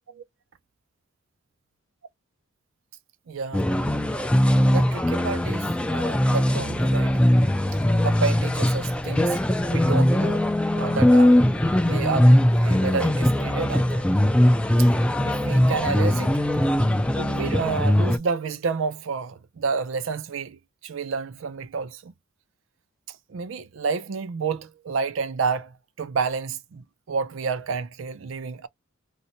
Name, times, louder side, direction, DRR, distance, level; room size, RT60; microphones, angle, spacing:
voice 1, 3.3-3.8 4.7-7.2 8.0-9.4 9.7-10.5 10.7-11.4 11.8-14.1 14.8-14.9 15.2-16.3 17.2-22.1 23.1-28.7, right 5 dB, 65° right, 0.4 m, -30 dB
sound 1, 3.5-18.2, left 1 dB, 5° left, 0.3 m, -20 dB
3.9 x 2.1 x 2.8 m
head